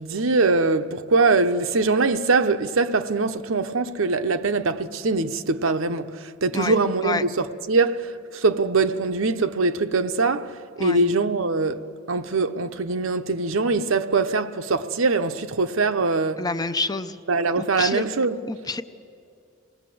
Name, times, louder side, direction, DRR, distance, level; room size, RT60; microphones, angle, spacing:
voice 1, 0.0-10.5 10.8-11.8 12.1-16.4 17.3-18.4, right 3 dB, 75° right, 0.8 m, -22 dB
voice 2, 16.4-17.2 17.6-18.0 18.5-18.8, left 3 dB, 20° left, 0.6 m, -27 dB
26.5 x 19.0 x 7.7 m
head